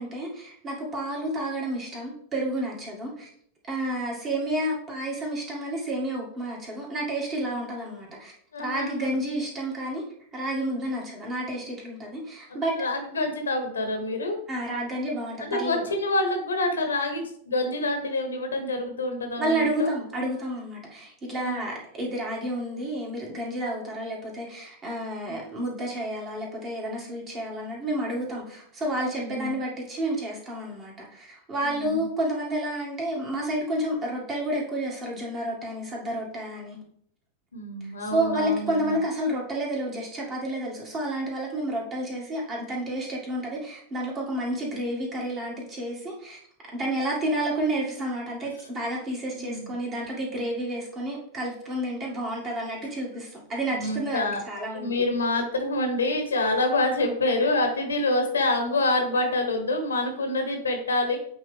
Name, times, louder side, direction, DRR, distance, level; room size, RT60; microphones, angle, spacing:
voice 1, 0.0-3.3 3.7-8.3 8.6-10.0 10.3-12.7 14.5-15.9 19.4-36.8 37.8-46.4 46.7-54.9, right 1 dB, 25° right, -2 dB, 2.0 m, -30 dB
voice 2, 8.5-9.1 12.5-14.4 15.4-19.9 21.4-21.6 25.3-25.4 29.0-29.5 31.6-32.1 37.5-39.0 49.3-49.7 53.7-54.4 54.7-61.2, left 2 dB, 70° left, 5 dB, 1.1 m, -27 dB
8.3 x 3.5 x 3.4 m, 0.64 s
figure-of-eight pair, 90°, 0 cm